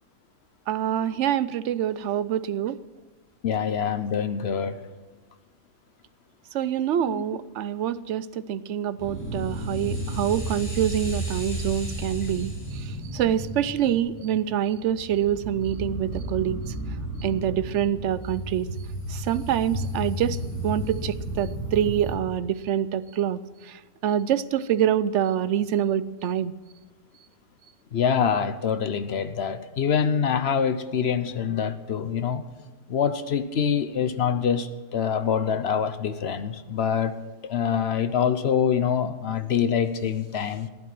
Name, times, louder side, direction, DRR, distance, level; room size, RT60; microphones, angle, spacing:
voice 1, 0.7-2.8 6.5-12.5 13.1-16.6 17.2-18.7 19.1-20.4 20.6-23.4 24.0-26.5, right 10 dB, 65° right, 16 dB, 0.8 m, -26 dB
voice 2, 3.4-4.7 7.1-7.2 27.9-32.4 32.9-37.2 37.5-40.7, left 7 dB, 55° left, 11 dB, 0.9 m, -25 dB
sound 1, 9.0-22.1, right 1 dB, 10° left, 3.0 m, -33 dB
15.5 x 11.0 x 6.1 m, 1.3 s
omnidirectional pair, 1.5 m